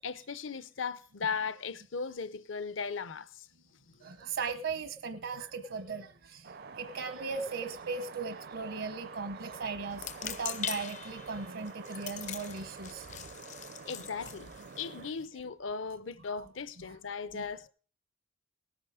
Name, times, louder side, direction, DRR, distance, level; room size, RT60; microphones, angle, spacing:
voice 1, 0.0-3.5 13.8-17.7, left 5 dB, 70° left, 0.7 m, -37 dB
voice 2, 4.0-13.1 16.3-16.5 16.8-17.0 17.3-17.4, right 4 dB, 75° right, 1.0 m, -38 dB
sound 1, 6.4-15.1, right 5 dB, 50° right, 0.5 m, -48 dB
sound 2, 9.9-15.3, left 9 dB, 35° left, 0.5 m, -42 dB
18.5 x 8.3 x 5.0 m
head